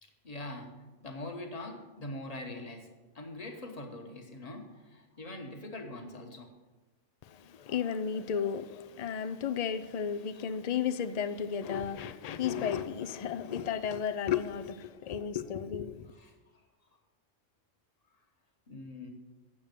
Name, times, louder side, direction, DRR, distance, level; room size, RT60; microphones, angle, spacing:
voice 1, 0.0-2.9 3.1-6.5 16.1-16.6 18.7-19.1, left 2 dB, 35° left, 1.3 m, -43 dB
voice 2, 7.2-16.1, left 8 dB, 65° left, 0.4 m, -33 dB
8.7 x 7.1 x 6.7 m
omnidirectional pair, 1.3 m